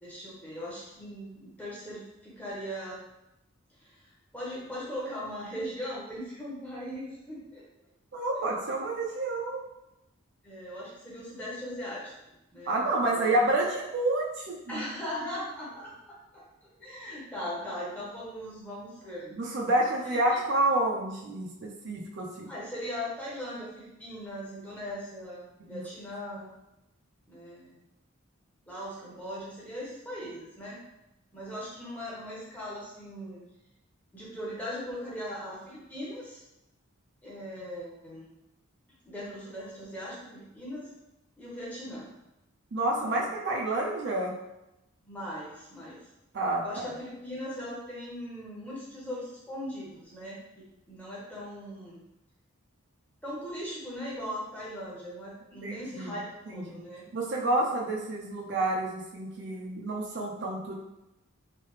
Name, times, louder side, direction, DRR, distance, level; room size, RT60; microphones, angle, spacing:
voice 1, 0.0-3.0 3.8-7.6 10.4-12.1 12.5-13.6 14.7-19.4 20.0-20.4 22.5-26.5 27.3-27.8 28.6-30.8 31.3-33.4 34.1-36.4 37.2-38.3 39.0-40.9 41.4-42.1 43.0-43.2 45.0-46.0 46.6-52.0 53.2-57.1, equal, 5° left, -7 dB, 0.8 m, -39 dB
voice 2, 8.1-9.6 12.7-14.8 19.3-22.5 25.6-25.8 42.7-44.3 46.3-46.9 55.6-56.2 56.5-56.8 57.1-60.7, right 2 dB, 55° right, -2 dB, 0.4 m, -29 dB
3.2 x 2.1 x 3.1 m, 0.90 s
head